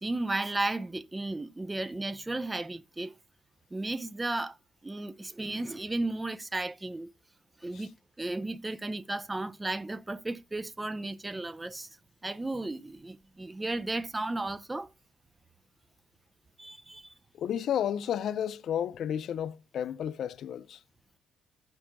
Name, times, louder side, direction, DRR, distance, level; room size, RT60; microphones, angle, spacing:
voice 1, 0.0-3.1 3.7-4.6 4.8-7.1 7.6-12.0 12.2-14.9 16.6-17.1, right 2 dB, 15° right, 0.6 m, -34 dB
voice 2, 17.4-20.8, left 9 dB, 70° left, 0.4 m, -32 dB
15.5 x 6.0 x 2.2 m
cardioid pair, 90°, 0 cm